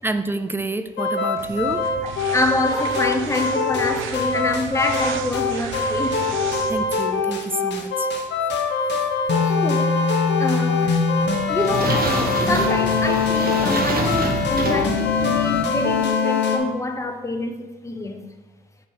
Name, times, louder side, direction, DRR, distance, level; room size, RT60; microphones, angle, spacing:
voice 1, 0.0-1.9 6.7-8.1, right 2 dB, 10° right, 0.4 m, -28 dB
sound 1, 1.0-16.6, left 4 dB, 60° left, 1.0 m, -22 dB
sound 2, 1.4-7.0, right 7 dB, 85° right, 0.6 m, -34 dB
voice 2, 2.2-6.3 9.4-10.0 10.4-11.0 11.5-18.3, left 2 dB, 15° left, 0.7 m, -26 dB
sound 3, 11.1-16.0, right 2 dB, 50° right, 1.1 m, -27 dB
8.4 x 2.9 x 5.0 m
cardioid pair, 90°, 20 cm